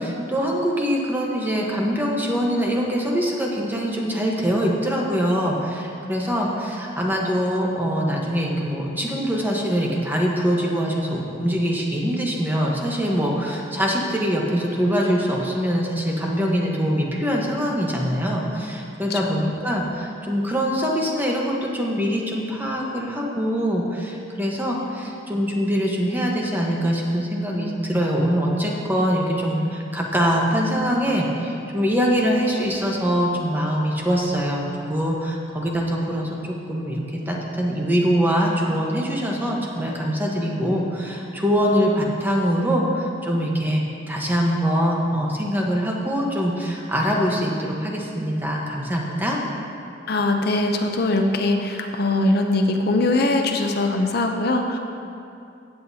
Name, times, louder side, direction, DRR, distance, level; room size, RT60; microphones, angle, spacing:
voice 1, 0.0-49.4, equal, 10° right, -2 dB, 1.1 m, -23 dB
voice 2, 19.1-19.5 50.1-54.8, left 2 dB, 55° left, 4 dB, 0.6 m, -21 dB
15.5 x 8.0 x 2.8 m, 2.6 s
head